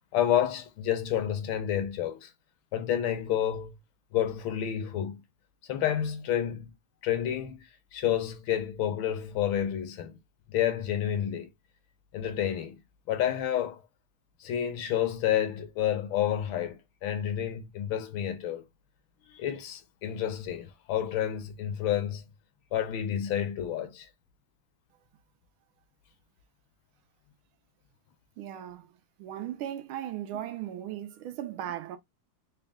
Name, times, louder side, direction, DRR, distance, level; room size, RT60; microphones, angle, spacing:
voice 1, 0.1-2.3 2.7-3.7 4.1-5.2 5.7-6.7 7.0-7.6 7.9-10.2 10.5-11.5 12.1-12.8 13.1-13.8 14.4-18.6 19.3-22.2 22.7-24.1, left 10 dB, 75° left, 1.5 m, -29 dB
voice 2, 28.4-28.9 29.2-32.0, right 11 dB, 80° right, 1.5 m, -37 dB
4.2 x 2.2 x 3.5 m
omnidirectional pair, 2.3 m